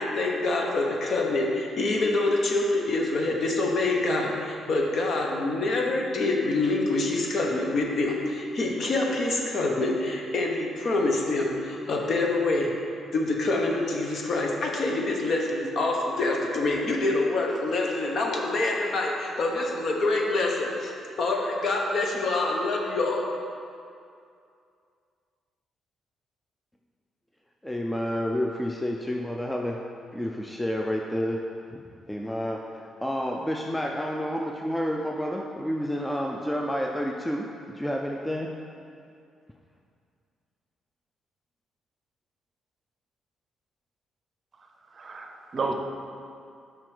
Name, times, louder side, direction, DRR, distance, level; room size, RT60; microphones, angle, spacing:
voice 1, 0.0-12.7 13.1-20.9 21.2-23.3, left 2 dB, 55° left, 0 dB, 0.9 m, -26 dB
voice 2, 27.6-29.8 30.1-31.4 32.1-38.5, equal, 5° left, 0 dB, 0.4 m, -29 dB
voice 3, 44.6-45.7, right 4 dB, 40° right, 3 dB, 0.6 m, -33 dB
7.4 x 5.0 x 3.3 m, 2.4 s
cardioid pair, 90°, 0 cm